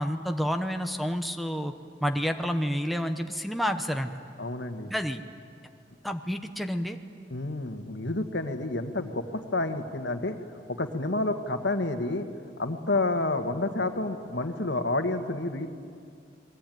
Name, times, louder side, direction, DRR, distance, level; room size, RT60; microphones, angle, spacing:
voice 1, 0.0-1.7 2.0-4.1 4.9-5.2 6.0-7.0, equal, ahead, 5 dB, 1.0 m, -29 dB
voice 2, 4.4-4.9 7.3-10.4 10.7-12.3 12.6-15.7, left 2 dB, 70° left, 7 dB, 1.7 m, -29 dB
29.0 x 21.5 x 9.3 m, 2.3 s
head